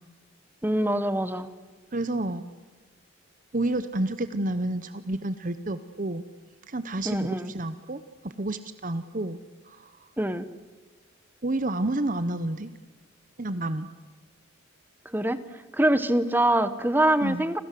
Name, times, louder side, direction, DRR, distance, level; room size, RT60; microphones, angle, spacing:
voice 1, 0.6-1.5 7.0-7.5 10.2-10.4 15.1-15.4 15.7-17.6, right 1 dB, 10° right, 13 dB, 1.1 m, -24 dB
voice 2, 1.9-2.4 3.5-6.2 6.7-9.4 9.6-9.9 11.4-12.7 13.4-13.9 17.2-17.4, right 2 dB, 40° right, 12 dB, 0.9 m, -30 dB
29.5 x 26.0 x 7.6 m, 1.3 s
head